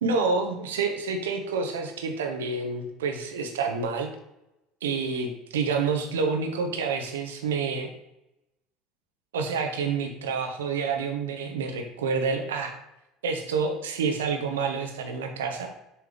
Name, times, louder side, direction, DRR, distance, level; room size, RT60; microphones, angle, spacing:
voice 1, 0.0-4.1 4.8-7.9 9.3-12.8 13.2-15.7, right 4 dB, 70° right, 4 dB, 0.8 m, -28 dB
7.0 x 3.4 x 4.9 m, 0.87 s
figure-of-eight pair, 65°, 0 cm